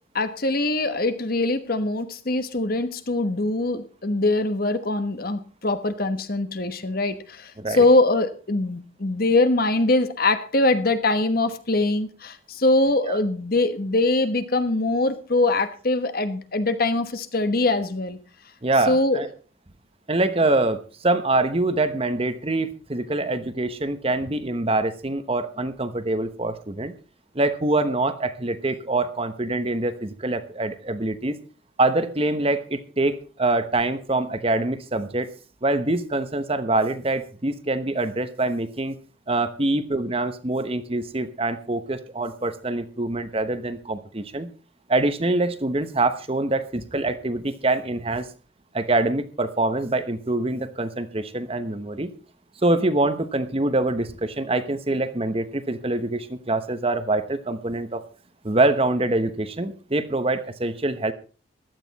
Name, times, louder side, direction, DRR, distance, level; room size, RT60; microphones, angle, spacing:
voice 1, 0.1-18.2 18.7-19.3, left 2 dB, 45° left, 10 dB, 1.2 m, -23 dB
voice 2, 18.6-19.3 20.1-26.9 27.3-31.4 31.8-35.3 35.6-39.0 39.3-44.5 44.9-48.3 48.7-52.1 52.6-58.0 58.4-61.1, right 2 dB, 30° right, 10 dB, 1.0 m, -24 dB
15.5 x 11.5 x 4.1 m, 0.35 s
head